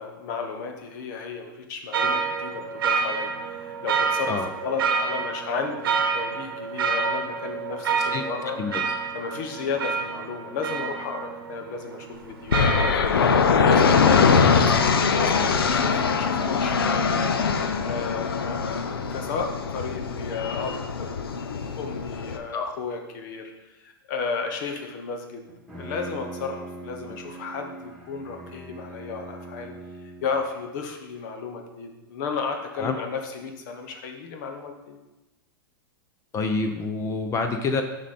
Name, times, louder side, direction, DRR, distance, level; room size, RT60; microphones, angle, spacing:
voice 1, 0.0-8.6 9.1-17.3 17.8-21.2 21.8-25.5 25.8-29.7 30.2-35.0, left 5 dB, 55° left, 4 dB, 1.0 m, -33 dB
sound 1, 1.9-13.0, right 5 dB, 70° right, 0.9 m, -28 dB
sound 2, 12.5-22.4, left 5 dB, 85° left, 0.7 m, -22 dB
Bowed string instrument, 25.5-30.6, right 2 dB, ahead, 2.1 m, -41 dB
voice 2, 36.3-37.8, left 4 dB, 25° left, 6 dB, 0.6 m, -27 dB
7.1 x 5.4 x 4.2 m, 1.0 s
hypercardioid pair, 110°, 12 cm